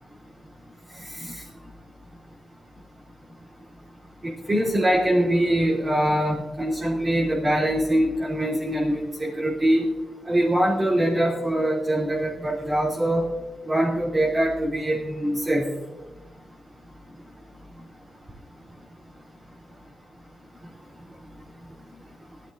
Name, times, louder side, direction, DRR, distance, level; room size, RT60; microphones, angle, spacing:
voice 1, 1.0-1.4 4.2-9.9 10.2-13.3 13.6-15.7, right 1 dB, 25° right, -7 dB, 3.0 m, -23 dB
18.5 x 15.0 x 2.7 m, 1.1 s
cardioid pair, 90°, 0 cm